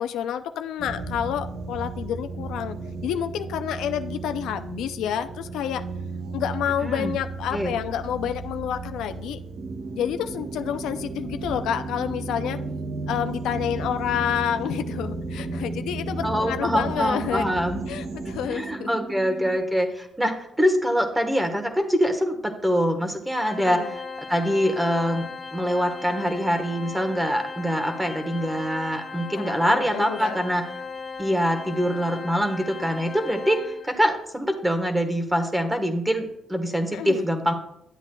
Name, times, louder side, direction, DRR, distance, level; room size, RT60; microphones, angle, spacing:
voice 1, 0.0-2.8 3.0-5.8 6.3-9.4 9.9-12.6 13.1-17.5 17.9-18.9 23.6-23.9 29.4-30.8 36.9-37.3, left 9 dB, 85° left, 9 dB, 0.4 m, -29 dB
sound 1, 0.8-18.5, right 3 dB, 80° right, 1.1 m, -35 dB
voice 2, 6.8-7.1 7.5-7.7 16.2-17.8 18.2-24.0 24.3-30.6 31.2-37.5, equal, 10° right, 6 dB, 1.3 m, -24 dB
sound 2, 9.6-19.6, right 4 dB, 50° right, 0.6 m, -37 dB
Organ, 23.4-34.1, left 4 dB, 30° left, 1.0 m, -37 dB
11.0 x 8.1 x 2.3 m, 0.79 s
cardioid pair, 90°, 0 cm